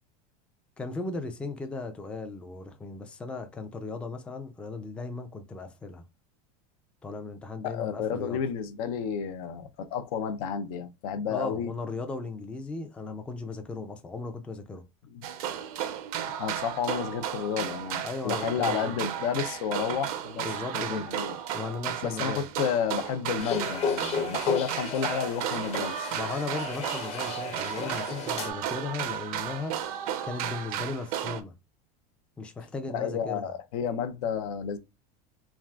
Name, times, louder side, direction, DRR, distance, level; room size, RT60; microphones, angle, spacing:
voice 1, 0.8-6.0 7.0-8.4 11.3-14.8 18.0-18.9 20.4-21.1 21.5-22.4 26.1-29.8 30.2-31.5 32.4-33.4, left 3 dB, 5° left, 0.3 m, -36 dB
voice 2, 7.6-11.7 15.1-15.3 16.4-20.5 20.7-21.4 22.0-26.1 32.9-34.8, left 7 dB, 70° left, 0.5 m, -31 dB
sound 1, 15.2-31.4, right 10 dB, 70° right, 0.5 m, -34 dB
sound 2, 23.4-28.5, left 4 dB, 35° left, 0.8 m, -33 dB
3.4 x 2.4 x 2.3 m
supercardioid pair, 130°, 19 cm